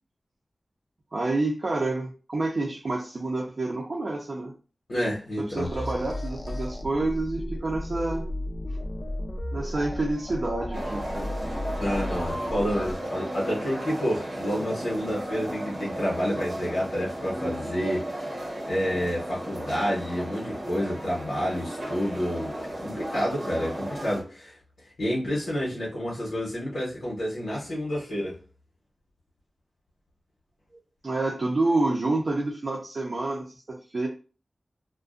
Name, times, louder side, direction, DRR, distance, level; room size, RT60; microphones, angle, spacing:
voice 1, 1.1-4.5 5.4-8.3 9.5-11.3 31.0-34.1, right 2 dB, 55° right, -3 dB, 0.5 m, -28 dB
voice 2, 4.9-5.7 11.8-18.4 18.7-28.4, equal, 85° left, -5 dB, 0.9 m, -29 dB
sound 1, 5.6-12.9, left 1 dB, 45° left, 0.4 m, -34 dB
sound 2, 10.7-24.2, right 1 dB, 90° right, 0.9 m, -35 dB
2.4 x 2.2 x 2.4 m, 0.35 s
wide cardioid pair, 80°, 0 cm